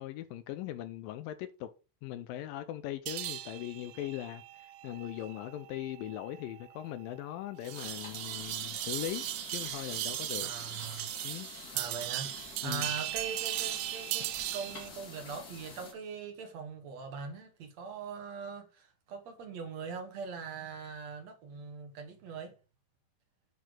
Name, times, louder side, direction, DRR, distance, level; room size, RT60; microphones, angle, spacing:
voice 1, 0.0-1.7 2.0-9.3 9.5-10.5 11.2-11.5 12.6-12.9, left 13 dB, 90° left, 2.0 m, -40 dB
sound 1, 3.1-14.9, right 16 dB, 85° right, 2.0 m, -38 dB
sound 2, 7.7-15.9, left 3 dB, 30° left, 1.9 m, -48 dB
voice 2, 10.4-11.1 11.7-22.5, right 5 dB, 55° right, 2.2 m, -42 dB
8.3 x 4.5 x 6.3 m
omnidirectional pair, 4.8 m